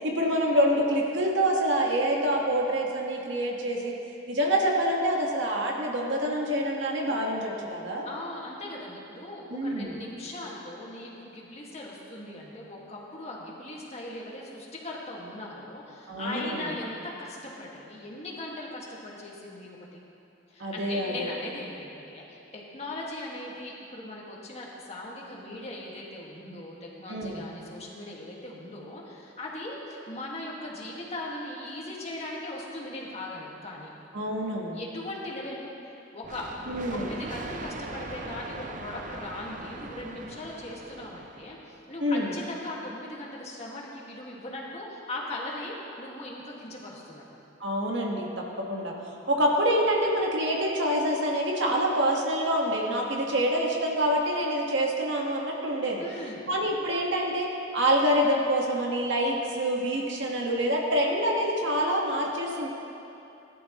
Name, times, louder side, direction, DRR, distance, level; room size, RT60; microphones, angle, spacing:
voice 1, 0.0-3.9 4.3-8.1 9.5-9.9 16.1-16.7 20.6-21.3 27.1-27.4 34.1-34.8 36.7-37.1 42.0-42.3 47.6-56.0 56.5-62.7, equal, 65° right, -1 dB, 1.7 m, -26 dB
voice 2, 8.0-20.0 20.5-33.9 34.7-35.7 36.1-36.5 36.9-47.2 56.0-56.5, left 1 dB, 35° left, -4 dB, 2.0 m, -39 dB
sound 1, 36.2-41.8, right 3 dB, 40° right, 0.6 m, -41 dB
19.0 x 11.5 x 3.1 m, 2.7 s
head